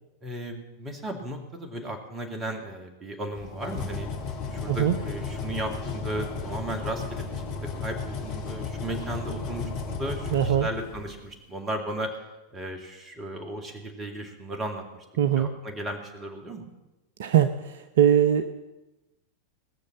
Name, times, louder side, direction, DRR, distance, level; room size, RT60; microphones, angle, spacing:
voice 1, 0.2-4.1 4.5-7.3 7.6-12.2 12.5-14.8 15.3-16.6, right 1 dB, 20° right, 4 dB, 2.3 m, -35 dB
sound 1, 3.4-11.3, left 4 dB, 45° left, 2.0 m, -34 dB
voice 2, 10.3-10.7 15.2-15.5 17.2-18.5, right 10 dB, 60° right, 10 dB, 0.6 m, -21 dB
19.0 x 6.6 x 7.4 m, 1.0 s
figure-of-eight pair, 90°, 0 cm